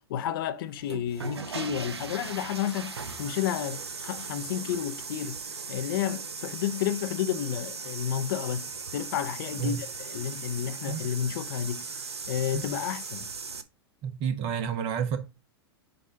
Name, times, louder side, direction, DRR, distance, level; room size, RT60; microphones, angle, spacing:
voice 1, 0.0-5.4 5.7-11.9 12.3-13.3, left 10 dB, 60° left, 0.6 m, -31 dB
sound 1, 0.7-13.6, right 4 dB, 85° right, 0.7 m, -38 dB
voice 2, 14.0-15.2, right 7 dB, 45° right, 1.3 m, -30 dB
7.6 x 2.5 x 5.6 m
hypercardioid pair, 100°, 13 cm